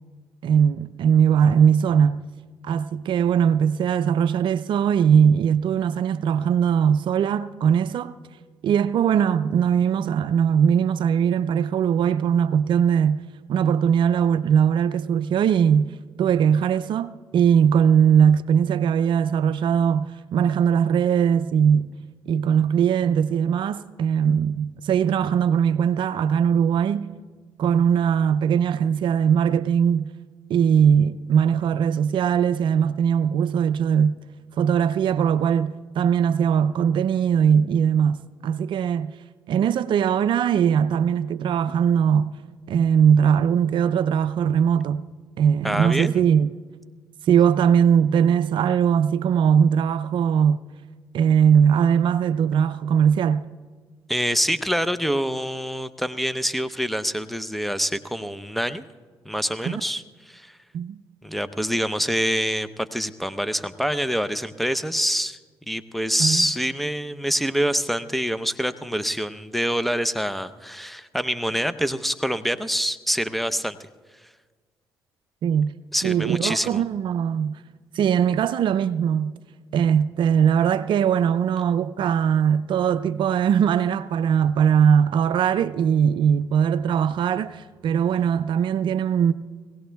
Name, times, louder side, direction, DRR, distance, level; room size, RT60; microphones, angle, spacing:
voice 1, 0.4-2.2 2.6-8.1 8.6-13.2 13.5-21.9 22.3-27.1 27.6-30.1 30.5-34.1 34.6-39.1 39.5-42.4 42.7-45.1 45.4-46.5 47.2-50.6 51.1-53.4 59.6-59.8 60.7-61.0 66.2-66.5 75.4-75.7 76.0-77.5 77.9-79.3 79.7-89.3, right 8 dB, 65° right, 0.4 m, -20 dB
voice 2, 45.6-46.2 54.1-58.8 59.2-60.5 61.2-65.4 65.7-73.8 75.9-76.8, equal, ahead, 0.7 m, -26 dB
22.0 x 17.0 x 2.3 m
supercardioid pair, 55°, 9 cm